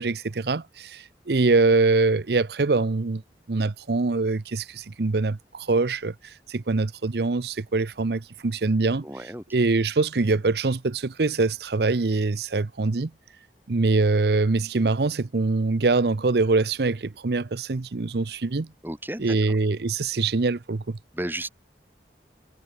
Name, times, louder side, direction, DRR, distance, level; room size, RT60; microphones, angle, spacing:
voice 1, 0.0-3.2 3.5-9.1 9.5-13.1 13.7-18.7 19.2-21.0, right 3 dB, 65° right, 0.7 m, -24 dB
voice 2, 9.0-9.4 18.8-19.6 21.1-21.5, right 1 dB, 10° right, 4.6 m, -33 dB
head